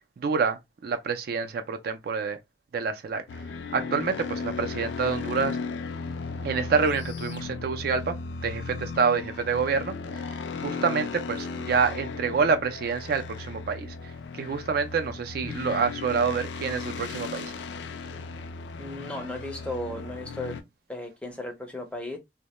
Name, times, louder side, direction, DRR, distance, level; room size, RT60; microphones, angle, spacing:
voice 1, 0.2-2.4 2.7-3.2 3.7-5.6 6.4-8.2 8.4-10.3 10.6-13.9 14.3-17.5, right 5 dB, 55° right, 0.3 m, -27 dB
sound 1, 3.3-20.6, left 4 dB, 75° left, 0.4 m, -36 dB
voice 2, 18.8-20.6 20.9-22.2, left 1 dB, 5° left, 0.4 m, -35 dB
2.1 x 2.0 x 2.9 m
head